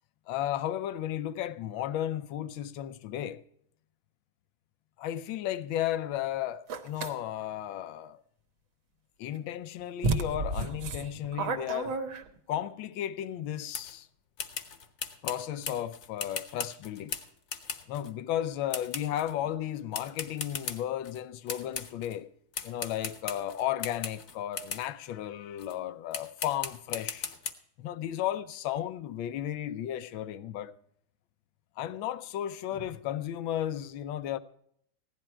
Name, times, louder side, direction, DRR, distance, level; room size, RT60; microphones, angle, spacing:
voice 1, 0.3-3.4 5.0-8.2 9.2-12.0 12.5-14.1 15.2-17.1 17.9-22.3 22.6-27.3 27.8-30.7 31.8-34.4, left 11 dB, 80° left, 1.5 m, -34 dB
sound 1, 6.7-7.1 9.4-9.5 10.0-12.6, right 3 dB, 75° right, 1.9 m, -31 dB
sound 2, 13.7-14.0 14.4-18.1 18.7-19.3 19.9-21.2 21.5-22.2 22.5-24.9 25.6-25.8 26.1-27.5, left 6 dB, 50° left, 1.2 m, -38 dB
16.0 x 11.0 x 4.5 m
omnidirectional pair, 2.2 m